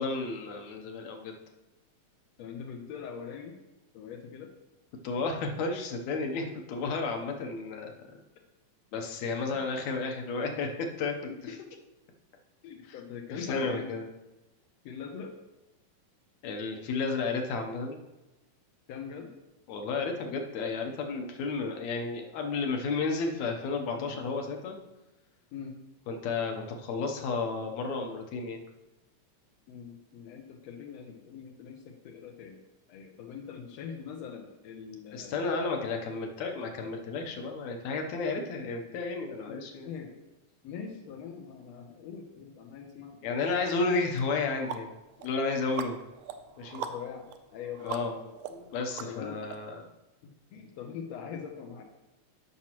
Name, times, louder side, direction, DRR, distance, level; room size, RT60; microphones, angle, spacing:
voice 1, 0.0-1.4 5.0-6.4 6.7-7.9 8.9-11.1 11.4-11.5 13.3-14.1 16.4-18.0 19.7-24.8 26.1-28.6 35.1-39.9 43.2-44.9 45.2-46.0 46.6-46.8 47.8-48.2 48.5-49.8, left 4 dB, 70° left, 3 dB, 1.8 m, -32 dB
voice 2, 2.4-3.6 3.9-4.5 6.4-6.5 6.9-7.0 9.3-9.4 10.5-10.6 11.3-11.8 12.6-14.0 14.8-15.3 18.9-19.3 23.9-24.1 25.5-25.8 29.7-32.6 32.9-35.5 37.3-37.4 39.5-40.1 40.6-43.2 46.8-47.3 47.5-48.3 49.0-49.5 50.2-51.8, left 7 dB, 90° left, 2 dB, 1.5 m, -42 dB
sound 1, 43.6-43.7 44.2-49.6, right 8 dB, 80° right, 2.0 m, -42 dB
13.5 x 5.9 x 3.0 m, 1.0 s
omnidirectional pair, 3.9 m